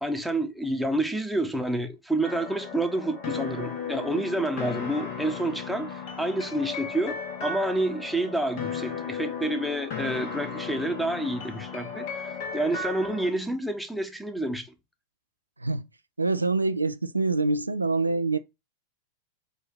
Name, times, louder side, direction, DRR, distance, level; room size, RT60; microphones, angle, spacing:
voice 1, 0.0-14.7, right 1 dB, ahead, 1.1 m, -29 dB
sound 1, 2.2-13.3, left 6 dB, 45° left, 1.6 m, -35 dB
voice 2, 16.2-18.4, right 3 dB, 85° right, 0.5 m, -25 dB
8.1 x 2.8 x 5.8 m
figure-of-eight pair, 90°, 0 cm